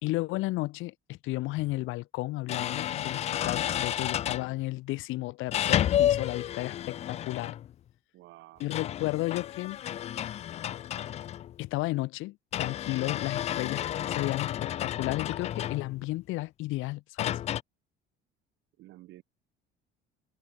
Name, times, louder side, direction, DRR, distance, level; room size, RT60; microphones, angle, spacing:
voice 1, 0.0-7.6 8.6-9.8 11.6-17.4, left 19 dB, 70° left, 3.9 m, -33 dB
sound 1, 1.6-1.7 2.5-4.5 5.5-7.7 8.6-11.6 12.5-16.1 17.2-17.6, left 11 dB, 30° left, 0.4 m, -31 dB
voice 2, 8.1-8.8 18.8-19.2, right 17 dB, 65° right, 5.9 m, -51 dB
cardioid pair, 160°, 21 cm